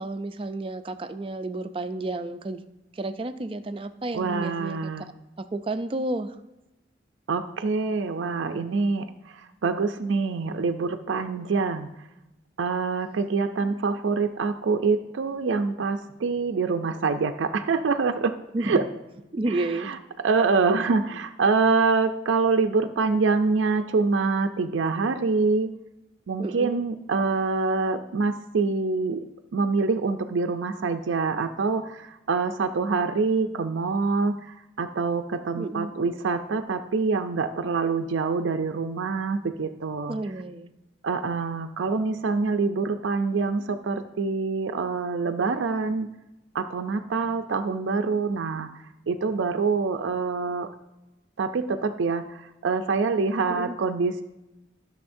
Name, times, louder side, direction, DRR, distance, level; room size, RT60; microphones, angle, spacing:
voice 1, 0.0-2.6 2.9-6.4 18.5-18.8 19.3-19.9 26.4-26.8 35.6-35.9 40.1-40.7 53.5-53.8, right 2 dB, 30° right, 10 dB, 0.4 m, -31 dB
voice 2, 4.1-5.0 7.3-11.9 12.6-18.3 18.6-18.8 19.8-20.0 20.2-25.7 26.3-29.2 29.5-40.2 41.0-46.1 46.5-48.7 49.1-50.7 51.4-54.2, right 4 dB, 90° right, 7 dB, 0.4 m, -25 dB
13.0 x 6.4 x 2.6 m, 0.97 s
head